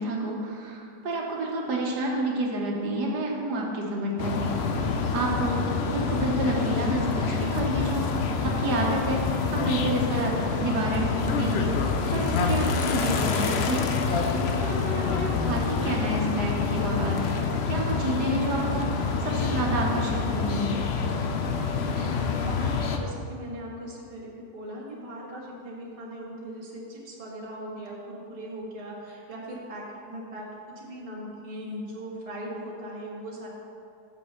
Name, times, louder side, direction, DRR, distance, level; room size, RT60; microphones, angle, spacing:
voice 1, 0.0-8.1 8.4-11.8 12.1-13.8 14.3-20.7, right 1 dB, 70° right, -1 dB, 1.6 m, -29 dB
sound 1, 4.2-23.0, left 5 dB, 85° left, 0.5 m, -27 dB
voice 2, 21.5-30.5 30.7-33.5, equal, 20° right, -4 dB, 1.2 m, -39 dB
6.1 x 5.7 x 6.9 m, 2.5 s
omnidirectional pair, 1.8 m